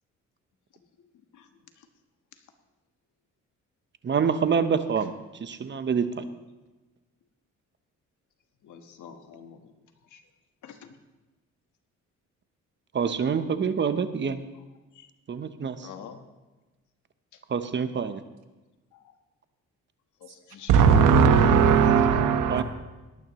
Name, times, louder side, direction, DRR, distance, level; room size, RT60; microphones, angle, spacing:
voice 1, 1.0-1.5 1.8-1.9 2.3-2.4 5.0-5.1 8.6-9.7 10.0-10.3 10.6-11.0 14.5-14.6 14.9-15.1 15.8-16.2 17.3-17.4 18.9-19.1 20.2-20.9 21.8-22.0, left 7 dB, 75° left, 6 dB, 1.4 m, -47 dB
voice 2, 4.0-5.1 5.4-6.2 12.9-14.4 15.3-15.9 17.5-18.2 22.5-22.6, right 6 dB, 40° right, 11 dB, 0.9 m, -26 dB
voice 3, 20.7-22.6, right 6 dB, 85° right, 7 dB, 1.3 m, -18 dB
18.0 x 12.0 x 3.1 m, 1.1 s
cardioid pair, 90°, 30 cm